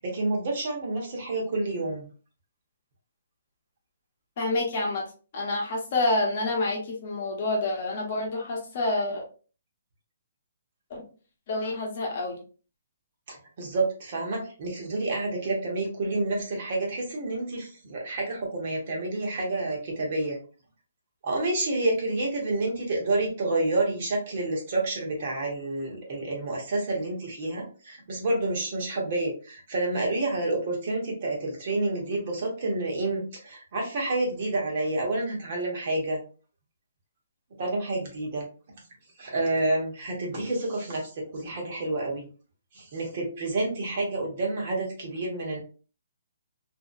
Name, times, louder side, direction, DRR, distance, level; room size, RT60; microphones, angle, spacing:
voice 1, 0.0-2.1 13.3-20.4 21.2-36.2 37.6-38.5 39.2-42.3 42.7-45.6, right 2 dB, 35° right, -1 dB, 1.0 m, -29 dB
voice 2, 4.4-5.0 5.3-9.2 10.9-11.0 11.5-12.4, left 2 dB, 35° left, -1 dB, 1.0 m, -28 dB
2.8 x 2.7 x 2.5 m, 0.37 s
hypercardioid pair, 175°, 0 cm